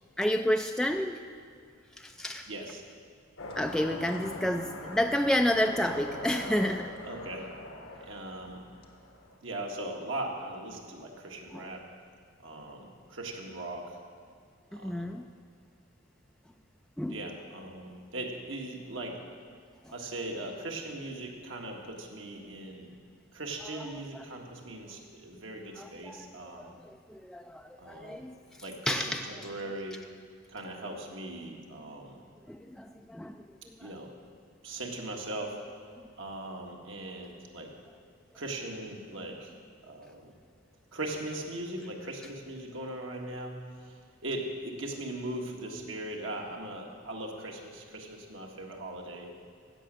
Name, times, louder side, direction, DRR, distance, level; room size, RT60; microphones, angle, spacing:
voice 1, 0.2-1.2 2.0-2.5 3.6-6.9 11.5-11.7 14.7-15.3 17.0-17.2 25.8-26.3 26.6-28.3 28.9-29.3 32.5-33.4, left 1 dB, 5° left, 4 dB, 0.3 m, -30 dB
voice 2, 2.5-2.8 7.1-7.5 8.0-8.6 9.4-11.9 12.4-14.0 14.7-15.1 17.1-19.2 19.9-22.9 23.3-26.8 27.8-28.2 28.6-30.0 30.5-32.2 33.8-34.1 34.6-35.6 36.2-37.7 38.3-39.5 39.8-40.3 40.9-49.3, right 1 dB, 70° right, 1 dB, 1.7 m, -39 dB
sound 1, 3.4-9.4, left 1 dB, 90° left, 1.5 m, -42 dB
16.0 x 6.2 x 7.6 m, 2.1 s
head